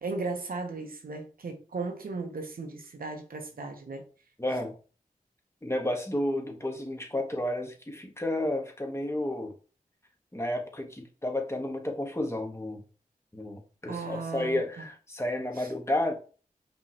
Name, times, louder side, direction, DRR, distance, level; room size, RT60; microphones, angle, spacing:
voice 1, 0.0-4.0 13.9-14.6 15.6-15.7, right 3 dB, 85° right, 0.8 m, -36 dB
voice 2, 4.4-4.7 5.6-9.5 10.3-12.8 13.3-16.1, left 1 dB, 20° left, 1.2 m, -31 dB
5.1 x 3.1 x 2.8 m
cardioid pair, 45°, 15 cm